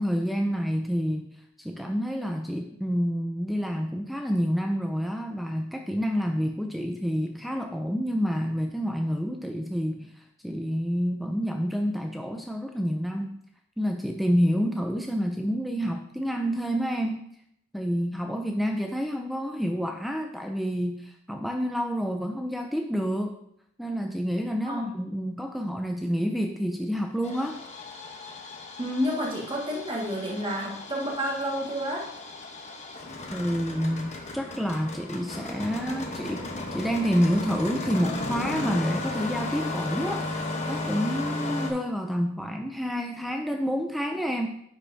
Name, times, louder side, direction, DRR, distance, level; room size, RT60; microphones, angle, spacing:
voice 1, 0.0-1.3 1.6-13.4 13.8-17.2 17.7-23.4 23.8-27.6 33.3-40.2 40.7-44.5, equal, ahead, 4 dB, 0.4 m, -28 dB
Engine starting, 27.2-41.7, left 2 dB, 35° left, 1.0 m, -35 dB
voice 2, 28.8-32.1, equal, 25° right, -3 dB, 1.8 m, -30 dB
9.9 x 5.8 x 2.7 m, 0.72 s
head